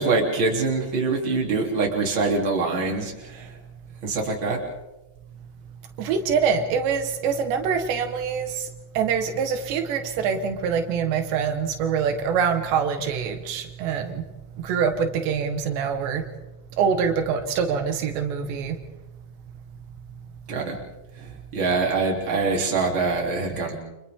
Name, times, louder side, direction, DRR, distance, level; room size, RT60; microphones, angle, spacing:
voice 1, 0.0-3.6 4.0-4.7 20.5-20.8 21.2-23.8, right 3 dB, 30° right, -1 dB, 3.7 m, -24 dB
voice 2, 6.0-8.7 9.0-14.2 14.6-16.2 16.8-18.8, right 6 dB, 85° right, 6 dB, 3.7 m, -25 dB
29.5 x 27.5 x 3.7 m, 1.0 s
omnidirectional pair, 4.9 m